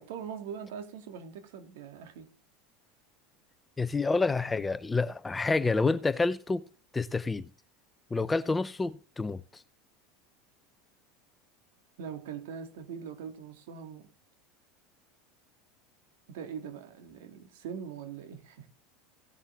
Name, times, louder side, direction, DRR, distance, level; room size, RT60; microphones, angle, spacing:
voice 1, 0.0-2.3 12.0-14.1 16.3-18.7, right 7 dB, 80° right, 2.8 m, -42 dB
voice 2, 3.8-6.6 6.9-7.5 8.1-9.6, left 3 dB, 10° left, 0.7 m, -28 dB
17.5 x 7.2 x 3.6 m
supercardioid pair, 135°, 0 cm